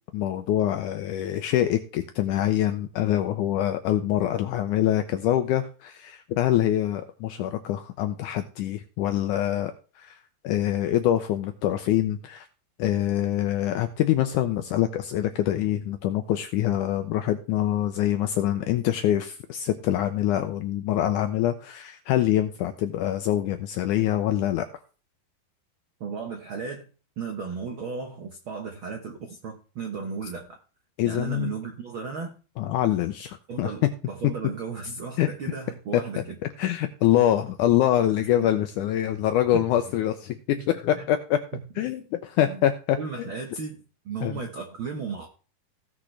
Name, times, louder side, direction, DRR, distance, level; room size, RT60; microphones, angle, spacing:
voice 1, 0.1-10.2 10.4-12.5 12.8-24.7 31.0-31.5 32.6-33.7 35.2-35.3 36.6-41.4 41.8-43.0 44.2-44.4, left 12 dB, 85° left, 8 dB, 1.8 m, -25 dB
voice 2, 26.0-26.9 27.2-30.6 31.0-32.4 33.5-36.4 38.2-38.5 39.5-39.7 41.0-41.1 41.5-41.6 42.5-42.6 43.0-45.3, right 5 dB, 85° right, 3 dB, 1.1 m, -35 dB
16.5 x 6.2 x 3.3 m, 0.36 s
omnidirectional pair, 4.2 m